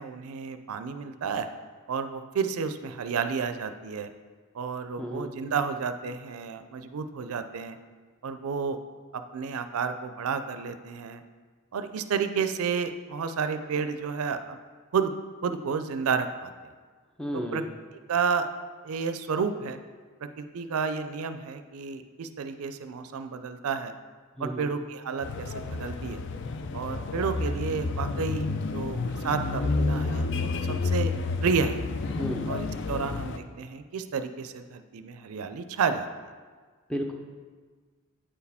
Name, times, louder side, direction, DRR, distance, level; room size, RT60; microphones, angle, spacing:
voice 1, 0.0-1.5 1.9-4.1 4.5-7.8 8.2-8.8 9.1-11.2 11.7-14.6 14.9-15.1 15.4-16.5 17.3-17.6 18.1-18.5 18.8-19.8 20.2-23.9 24.4-26.2 26.7-28.5 28.7-31.1 31.4-31.8 32.5-36.1, right 5 dB, 85° right, 9 dB, 0.4 m, -31 dB
voice 2, 5.0-5.3 17.2-17.7 24.4-24.7 32.1-32.5 36.9-37.1, equal, 5° left, 2 dB, 0.5 m, -33 dB
sound 1, 25.2-33.4, left 3 dB, 55° left, 0.4 m, -30 dB
8.6 x 4.7 x 3.5 m, 1.5 s
head